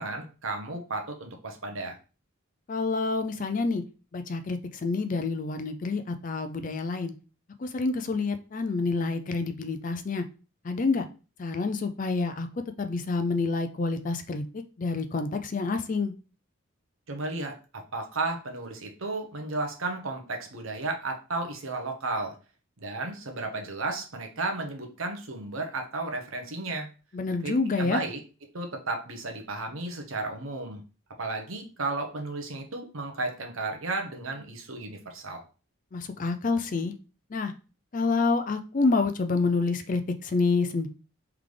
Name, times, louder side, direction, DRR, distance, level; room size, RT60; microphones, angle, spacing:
voice 1, 0.0-2.0 17.1-22.3 22.8-26.9 27.4-28.2 28.5-30.8 31.2-35.4, right 3 dB, 75° right, 3 dB, 0.9 m, -33 dB
voice 2, 2.7-3.8 4.1-7.1 7.6-10.3 10.6-11.1 11.4-16.1 27.1-28.0 35.9-36.9 37.3-37.5 37.9-40.9, left 3 dB, 40° left, 8 dB, 0.4 m, -28 dB
3.8 x 3.5 x 3.3 m, 0.34 s
head